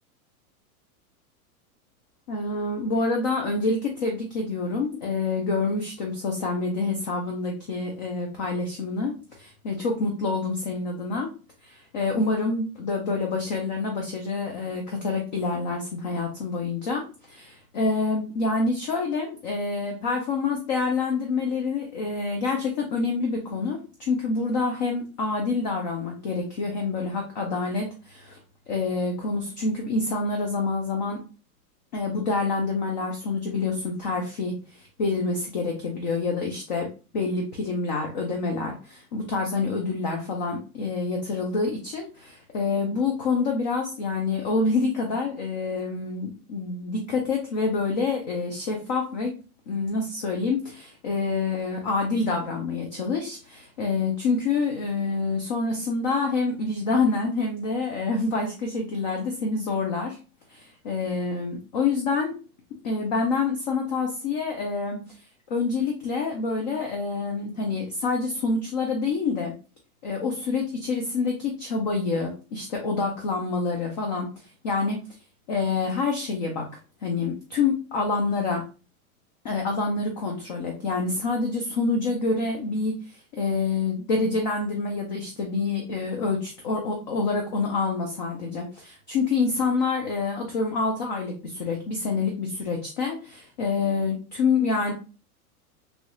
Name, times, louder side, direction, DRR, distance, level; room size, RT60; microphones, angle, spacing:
voice 1, 2.3-11.3 11.6-28.4 28.7-31.2 31.9-36.9 37.1-49.3 49.7-60.2 60.5-62.3 62.8-65.0 65.5-69.5 70.0-74.3 74.6-75.0 75.5-76.7 77.0-78.6 79.4-94.9, left 4 dB, 30° left, 2 dB, 0.4 m, -27 dB
3.1 x 2.3 x 2.9 m, 0.34 s
supercardioid pair, 150°, 45 cm